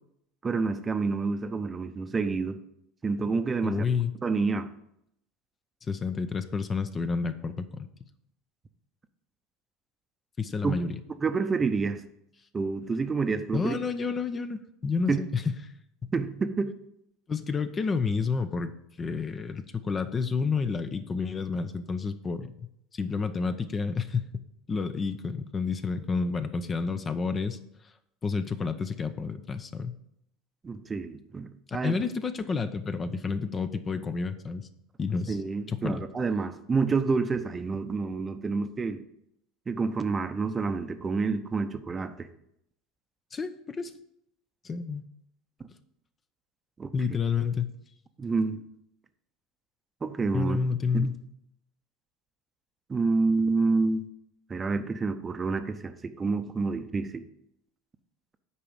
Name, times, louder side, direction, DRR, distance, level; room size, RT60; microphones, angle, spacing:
voice 1, 0.4-2.6 3.0-3.8 4.2-4.7 10.6-10.8 11.2-12.0 12.5-13.7 15.1-15.2 16.1-16.7 30.6-31.9 35.3-39.0 39.7-42.3 46.8-46.9 48.2-48.6 50.0-50.6 50.9-51.1 52.9-54.1 54.5-57.2, right 4 dB, 25° right, 9 dB, 0.8 m, -28 dB
voice 2, 3.6-4.1 5.9-7.9 10.4-11.0 13.5-15.6 16.0-16.1 17.3-18.7 19.0-22.5 22.9-27.6 28.2-30.0 31.7-34.7 35.0-35.4 35.7-36.0 43.3-43.9 44.6-45.0 46.9-47.7 50.3-51.2, left 5 dB, 30° left, 10 dB, 0.7 m, -30 dB
8.5 x 4.9 x 7.1 m, 0.77 s
hypercardioid pair, 85°, 0 cm